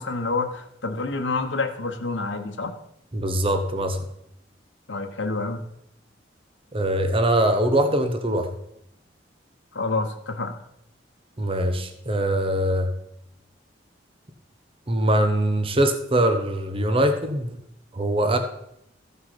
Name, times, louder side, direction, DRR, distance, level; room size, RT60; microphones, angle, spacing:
voice 1, 0.0-2.7 4.9-5.6 9.7-10.6, left 3 dB, 85° left, 4 dB, 1.2 m, -28 dB
voice 2, 3.1-4.0 6.7-8.5 11.4-12.9 14.9-17.6 17.9-18.4, right 1 dB, 30° right, 7 dB, 1.1 m, -22 dB
14.5 x 5.7 x 5.8 m, 0.78 s
head